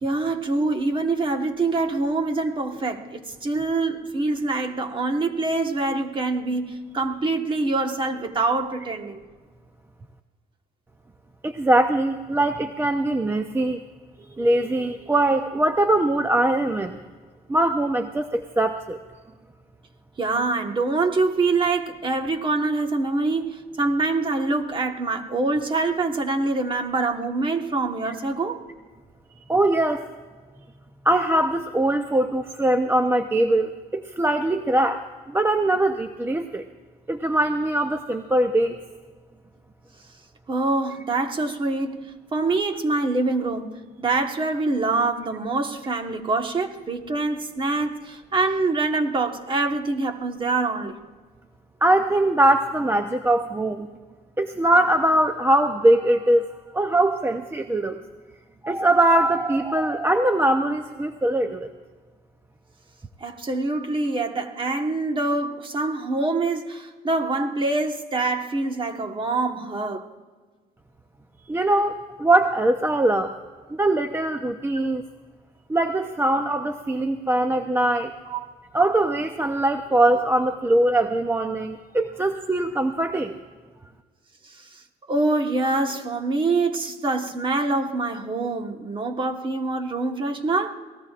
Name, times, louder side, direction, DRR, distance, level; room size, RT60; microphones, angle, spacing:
voice 1, 0.0-9.2 20.2-28.6 40.5-42.0 42.3-43.7 44.0-51.0 63.2-70.1 78.3-78.5 84.4-84.7 85.1-90.7, right 3 dB, 30° right, 1.4 m, -25 dB
voice 2, 11.4-13.8 14.4-17.0 17.5-19.0 28.1-28.2 29.5-30.1 31.0-36.6 37.1-38.8 51.8-53.9 54.4-56.5 56.7-58.0 58.6-61.7 71.5-73.3 73.7-75.0 75.7-78.1 78.7-83.4, right 1 dB, 15° right, 0.6 m, -22 dB
27.5 x 18.5 x 2.5 m
cardioid pair, 110°, 17 cm